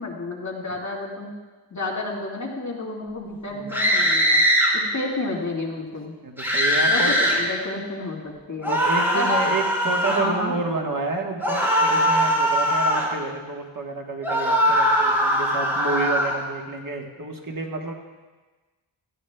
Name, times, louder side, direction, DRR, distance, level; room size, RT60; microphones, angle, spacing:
voice 1, 0.0-1.3 1.7-4.4 4.7-6.2 6.9-8.8 9.1-9.4 10.1-10.6, left 2 dB, 40° left, -3 dB, 1.9 m, -30 dB
sound 1, 3.7-4.7 6.4-7.4 8.6-10.2 11.4-13.1 14.2-16.4, equal, 5° right, 3.6 m, -21 dB
voice 2, 6.2-7.1 8.7-17.9, right 3 dB, 45° right, 1 dB, 1.2 m, -29 dB
17.0 x 13.5 x 2.2 m, 1.3 s
wide cardioid pair, 120°, 45 cm